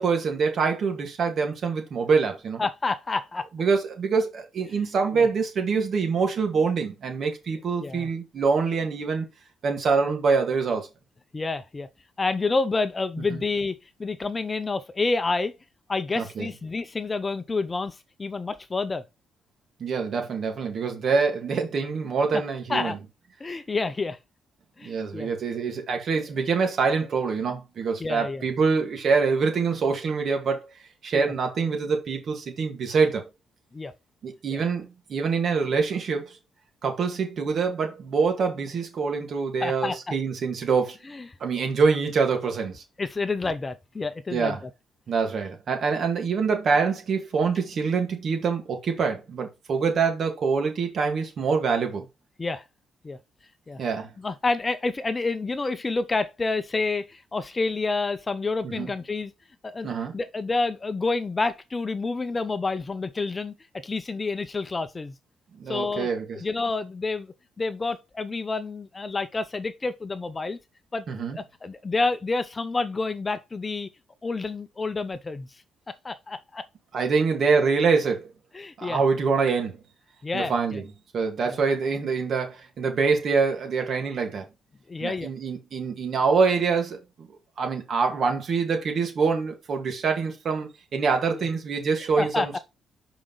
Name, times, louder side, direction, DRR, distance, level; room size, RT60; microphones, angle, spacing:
voice 1, 0.0-2.6 3.5-9.2 9.6-10.9 13.3-13.4 16.2-16.5 19.8-23.0 24.8-30.6 31.0-33.3 34.2-36.4 36.8-41.0 41.4-42.8 44.3-44.6 45.1-52.0 53.8-54.1 58.6-58.9 59.8-60.1 65.6-66.4 71.1-71.4 76.9-78.3 78.8-79.8 80.3-80.8 81.1-84.4 85.0-87.3 87.6-92.6, right 5 dB, 55° right, 2.1 m, -25 dB
voice 2, 2.6-3.5 4.7-4.8 5.1-5.3 7.8-8.1 11.3-11.9 12.2-15.5 15.9-19.0 22.3-22.4 22.7-23.0 23.4-24.2 24.8-25.3 28.0-28.4 31.1-31.3 33.7-33.9 34.5-34.6 39.6-40.0 41.1-41.3 43.0-44.6 52.4-52.6 53.0-53.2 53.7-53.8 54.2-59.3 59.6-63.5 63.8-65.1 65.7-66.1 66.4-70.6 70.9-71.0 71.3-73.9 74.2-75.5 75.9-76.6 78.5-79.0 80.2-80.8 81.5-81.6 84.9-85.3 91.3-91.4 92.2-92.6, left 3 dB, 25° left, 0.6 m, -29 dB
5.7 x 5.0 x 3.9 m
cardioid pair, 90°, 0 cm